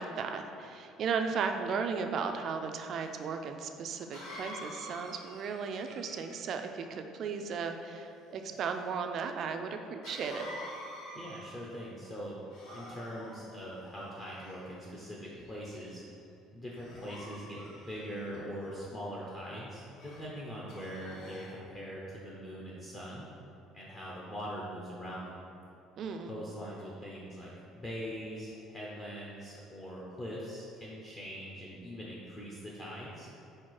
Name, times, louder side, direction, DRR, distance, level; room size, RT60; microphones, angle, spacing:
voice 1, 0.0-10.5 26.0-26.4, right 5 dB, 40° right, 6 dB, 0.3 m, -35 dB
Cough, 3.0-3.1 4.1-6.5 10.0-11.8 12.5-13.4 14.2-14.8 15.4-15.7 16.7-18.4 20.0-20.2 20.7-21.6, equal, 65° left, 1.3 m, -47 dB
voice 2, 11.1-12.4 12.7-16.0 16.5-23.3 23.7-25.3 26.2-33.3, equal, 20° left, -5 dB, 0.6 m, -42 dB
4.7 x 4.3 x 4.7 m, 2.7 s
cardioid pair, 180°, 0 cm